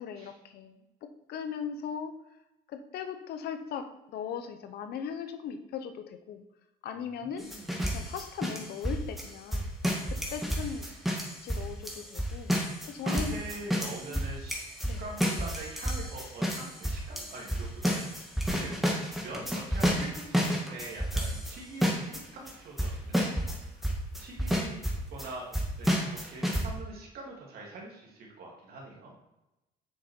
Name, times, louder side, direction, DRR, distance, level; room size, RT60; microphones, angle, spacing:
voice 1, 0.0-2.2 2.7-6.4 6.8-7.5 7.9-9.7 10.3-10.9 11.2-12.5 12.9-13.4 14.1-14.4 14.8-15.0, left 7 dB, 70° left, 8 dB, 0.9 m, -38 dB
voice 2, 7.1-7.7 13.0-14.6 15.0-18.7 19.1-23.8 24.2-29.1, right 2 dB, 65° right, -2 dB, 2.8 m, -44 dB
sound 1, 7.4-21.6 21.8-22.2 22.5-22.6 22.8-23.6 23.8-25.3 25.5-26.6, equal, ahead, 1.9 m, -30 dB
7.1 x 6.5 x 4.5 m, 0.94 s
cardioid pair, 110°, 17 cm